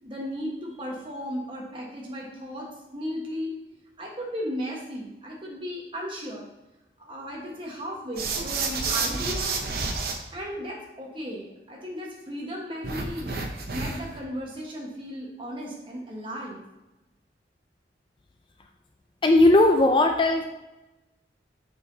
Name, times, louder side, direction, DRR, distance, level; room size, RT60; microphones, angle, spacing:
voice 1, 0.0-2.7 2.9-3.5 4.0-6.4 7.0-9.5 10.3-13.3 13.7-16.6, equal, 30° right, -2 dB, 1.3 m, -35 dB
sound 1, 8.2-10.1 12.8-14.2, right 4 dB, 55° right, 0.7 m, -29 dB
voice 2, 19.2-20.4, left 2 dB, 25° left, 4 dB, 0.3 m, -18 dB
6.9 x 5.7 x 2.8 m, 1.0 s
head